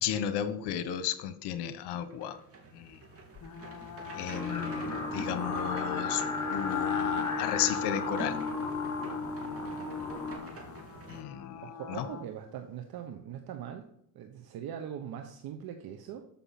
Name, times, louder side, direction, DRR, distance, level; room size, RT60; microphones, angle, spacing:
voice 1, 0.0-2.4 2.7-3.0 4.1-6.2 6.5-8.4 11.1-11.6 11.9-12.0, left 10 dB, 75° left, 12 dB, 1.2 m, -34 dB
sound 1, 1.9-11.2, right 2 dB, 35° right, 3.0 m, -46 dB
sound 2, 3.4-12.3, left 8 dB, 45° left, 1.2 m, -39 dB
Singing, 4.3-10.4, left 3 dB, 10° left, 4.7 m, -34 dB
voice 2, 11.6-13.9 14.1-16.3, right 9 dB, 60° right, 6 dB, 1.2 m, -41 dB
13.0 x 5.9 x 5.9 m, 0.72 s
cardioid pair, 105°, 41 cm